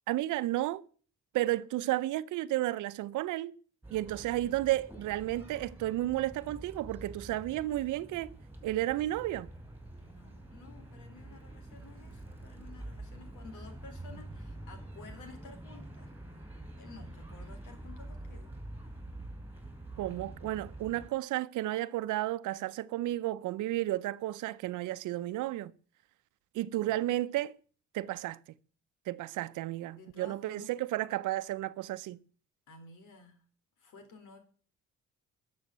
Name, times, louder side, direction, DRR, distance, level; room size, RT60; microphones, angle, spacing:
voice 1, 0.1-0.8 1.3-3.6 3.9-8.4 8.6-9.5 20.0-25.7 26.5-27.6 27.9-28.4 29.1-32.2, right 15 dB, 90° right, 0.8 m, -32 dB
sound 1, 3.8-21.1, right 1 dB, 5° right, 4.1 m, -47 dB
voice 2, 10.0-16.1 16.8-18.5 26.9-27.0 30.0-30.8 32.7-33.4 33.8-34.4, left 4 dB, 85° left, 3.9 m, -53 dB
12.5 x 7.3 x 9.1 m
cardioid pair, 90°, 30 cm